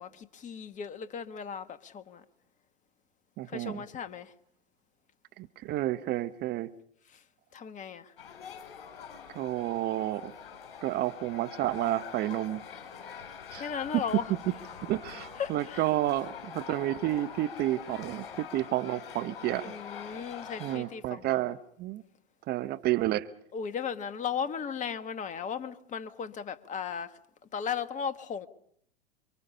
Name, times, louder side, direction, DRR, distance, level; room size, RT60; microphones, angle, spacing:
voice 1, 0.0-2.2 3.5-4.3 7.1-7.2 7.5-8.1 13.5-14.3 15.4-15.9 19.6-21.4 23.5-27.2 27.5-28.5, left 7 dB, 25° left, 1.6 m, -36 dB
voice 2, 3.4-3.8 5.4-6.7 9.3-10.3 10.8-12.6 13.5-13.7 13.9-14.0 14.8-19.7 20.6-22.0 22.5-23.3, right 15 dB, 35° right, 0.9 m, -30 dB
sound 1, 8.2-20.8, left 7 dB, 65° left, 7.9 m, -44 dB
28.5 x 24.5 x 5.6 m
hypercardioid pair, 100°, 30 cm